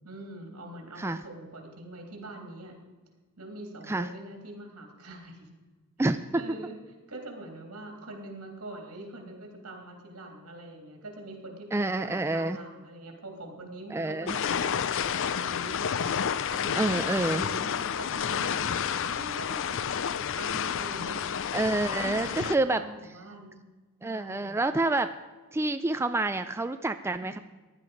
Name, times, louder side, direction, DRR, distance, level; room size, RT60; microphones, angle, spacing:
voice 1, 0.0-2.8 3.4-5.5 6.3-6.7 7.1-17.0 17.3-21.2 21.6-23.6 24.0-24.6 27.2-27.3, right 1 dB, 75° right, 2 dB, 3.2 m, -44 dB
voice 2, 6.0-6.4 11.7-12.6 13.9-14.4 16.7-17.4 21.5-22.8 24.0-25.1 25.5-27.4, right 2 dB, 10° right, 9 dB, 0.3 m, -28 dB
sound 1, 14.3-22.6, left 8 dB, 60° left, 0.5 m, -30 dB
15.0 x 11.0 x 5.1 m, 1.3 s
head